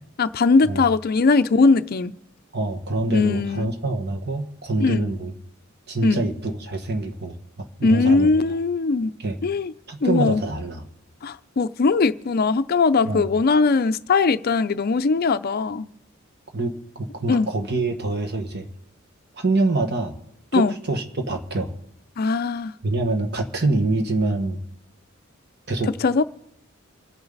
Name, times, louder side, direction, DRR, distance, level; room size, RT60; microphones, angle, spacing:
voice 1, 0.2-2.1 3.1-3.7 4.8-5.0 6.0-6.2 7.8-9.1 9.4-9.7 10.0-10.4 11.2-15.9 17.3-17.5 20.5-20.7 22.2-22.7 26.0-26.2, left 4 dB, 50° left, 0.5 m, -20 dB
voice 2, 2.5-5.3 5.9-8.3 9.2-9.4 9.9-10.8 13.0-13.3 16.5-18.7 19.4-20.2 20.5-21.7 22.8-24.6 25.7-25.9, right 2 dB, 55° right, 1.5 m, -25 dB
26.5 x 9.0 x 4.0 m
head